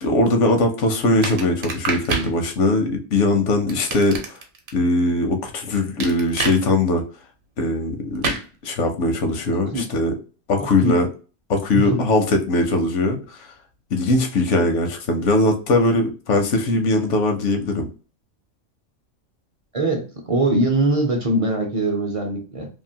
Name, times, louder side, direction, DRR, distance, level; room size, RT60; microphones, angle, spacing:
voice 1, 0.0-4.4 4.7-7.0 7.6-10.1 10.5-11.1 11.5-13.5 13.9-17.9, left 2 dB, 80° left, 5 dB, 1.0 m, -20 dB
sound 1, 1.2-2.3 3.7-4.7 6.0-6.6 8.2-8.4, right 4 dB, 60° right, 0.9 m, -26 dB
voice 2, 10.6-10.9 11.7-12.0 19.7-22.7, right 1 dB, 40° right, 1 dB, 0.5 m, -22 dB
2.8 x 2.4 x 2.7 m, 0.36 s
omnidirectional pair, 1.2 m